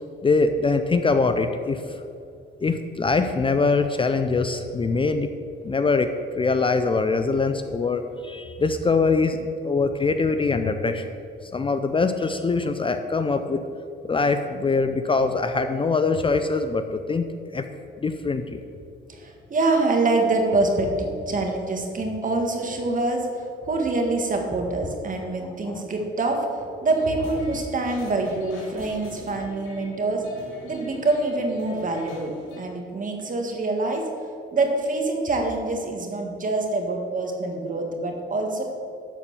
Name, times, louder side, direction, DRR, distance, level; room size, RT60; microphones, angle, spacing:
voice 1, 0.2-1.8 2.6-5.3 5.6-6.1 6.4-11.1 11.4-13.6 14.0-17.6 18.0-18.6 25.7-25.8, left 4 dB, 25° left, 8 dB, 0.5 m, -23 dB
voice 2, 19.1-30.2 30.6-32.3 32.6-34.0 34.5-38.6, right 2 dB, 40° right, 2 dB, 1.8 m, -25 dB
sound 1, 26.9-32.6, left 1 dB, 85° left, 2.4 m, -44 dB
12.0 x 4.4 x 7.1 m, 2.4 s
cardioid pair, 90°, 20 cm